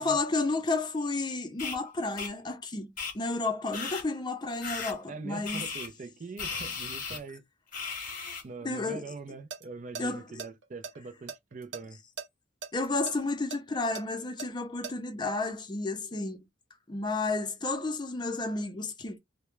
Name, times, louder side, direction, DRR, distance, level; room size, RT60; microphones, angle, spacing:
voice 1, 0.0-5.6 8.6-9.0 10.0-10.4 12.7-16.4 16.9-19.2, left 3 dB, 25° left, 0.5 m, -32 dB
sound 1, 1.6-1.8 2.2-2.3 3.0-3.1 3.7-4.0 4.6-4.9 5.5-5.9 6.4-7.2 7.7-8.4, left 5 dB, 45° left, 0.8 m, -36 dB
voice 2, 5.1-7.4 8.4-12.0, right 4 dB, 45° right, 0.4 m, -42 dB
sound 2, 9.3-9.6 9.9-10.0 10.4-11.8 12.2-12.3 12.6-14.9, right 5 dB, 90° right, 0.7 m, -39 dB
2.2 x 2.1 x 2.9 m
head